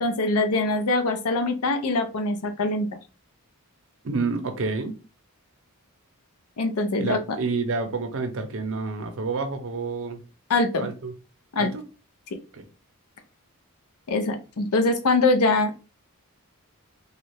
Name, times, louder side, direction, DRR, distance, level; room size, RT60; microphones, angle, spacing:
voice 1, 0.0-2.9 6.6-7.2 10.5-10.9 11.5-11.7 14.1-15.8, left 2 dB, 75° left, 8 dB, 0.5 m, -23 dB
voice 2, 4.0-5.0 7.0-10.2 10.8-11.1 11.6-11.8 12.5-12.6, right 4 dB, 60° right, 6 dB, 0.6 m, -29 dB
3.1 x 2.3 x 3.2 m, 0.32 s
head